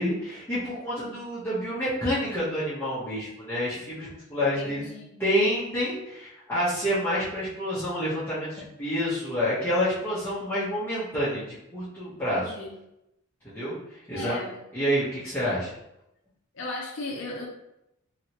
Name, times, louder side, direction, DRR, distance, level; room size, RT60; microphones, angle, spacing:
voice 1, 0.0-4.9 5.2-12.5 13.4-13.8 14.1-14.5 14.7-15.7, equal, 10° left, -13 dB, 0.8 m, -28 dB
voice 2, 4.5-5.3 12.3-12.7 14.1-14.5 16.5-17.5, left 2 dB, 55° left, -1 dB, 0.6 m, -36 dB
2.9 x 2.8 x 2.9 m, 0.85 s
head